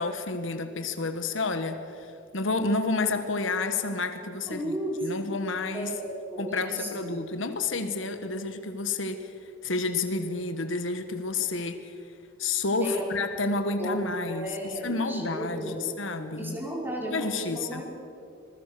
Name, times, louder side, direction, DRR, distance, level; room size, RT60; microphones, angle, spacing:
voice 1, 0.0-4.7 5.0-5.9 6.4-11.9 12.4-16.6 17.1-17.8, left 3 dB, 70° left, 8 dB, 1.5 m, -30 dB
voice 2, 4.5-5.3 5.7-7.2 12.8-13.1 13.8-15.9 16.4-17.8, right 1 dB, 10° right, -2 dB, 5.4 m, -34 dB
26.0 x 20.5 x 6.9 m, 2.6 s
head